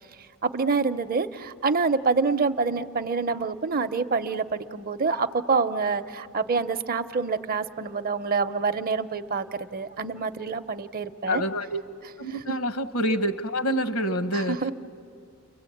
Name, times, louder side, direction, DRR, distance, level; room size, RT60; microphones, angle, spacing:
voice 1, 0.4-11.4 12.5-12.6 14.3-14.7, right 4 dB, 40° right, 11 dB, 0.6 m, -26 dB
voice 2, 11.3-11.8 12.2-14.6, equal, 75° left, 9 dB, 1.2 m, -27 dB
30.0 x 23.5 x 8.5 m, 2.5 s
head